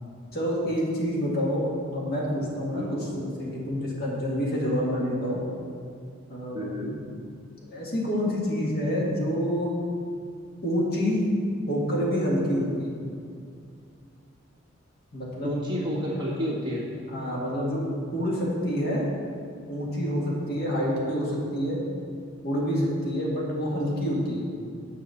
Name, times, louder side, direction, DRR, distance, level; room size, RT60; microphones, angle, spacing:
voice 1, 0.3-1.7 1.9-5.4 6.3-6.6 7.6-9.7 10.6-11.3 11.7-12.9 15.1-15.5 17.1-17.8 18.1-19.1 19.7-21.8 22.4-24.5, equal, 50° left, -4 dB, 1.9 m, -27 dB
voice 2, 6.5-7.0 15.4-16.9, equal, 25° right, -6 dB, 1.9 m, -30 dB
8.1 x 5.6 x 7.0 m, 2.3 s
head